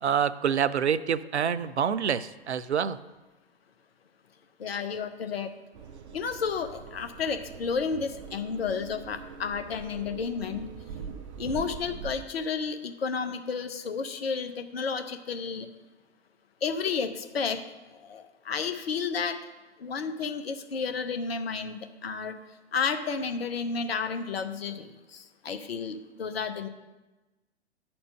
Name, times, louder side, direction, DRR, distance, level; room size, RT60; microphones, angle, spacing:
voice 1, 0.0-3.0, right 8 dB, 75° right, 15 dB, 0.5 m, -26 dB
voice 2, 4.6-5.5 6.1-10.7 11.4-15.7 16.6-17.6 17.9-19.4 19.8-22.3 22.7-26.7, left 5 dB, 60° left, 9 dB, 0.8 m, -32 dB
sound 1, 5.7-12.2, right 7 dB, 30° right, 0.5 m, -43 dB
10.0 x 4.3 x 6.5 m, 1.1 s
figure-of-eight pair, 110°, 33 cm